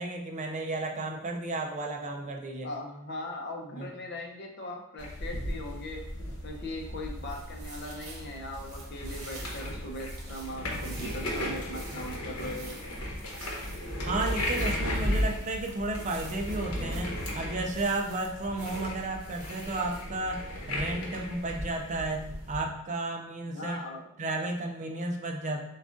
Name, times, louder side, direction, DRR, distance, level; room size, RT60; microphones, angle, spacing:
voice 1, 0.0-2.7 3.8-3.9 14.0-23.8 24.2-25.7, right 2 dB, 35° right, 2 dB, 0.4 m, -33 dB
voice 2, 2.6-6.0 6.4-12.8 23.5-24.1, left 1 dB, 50° left, 1 dB, 0.6 m, -39 dB
sound 1, 5.0-22.6, left 1 dB, 85° left, 1.0 m, -35 dB
sound 2, 7.0-20.0, right 3 dB, 65° right, 1.0 m, -49 dB
7.1 x 2.4 x 2.5 m, 0.83 s
head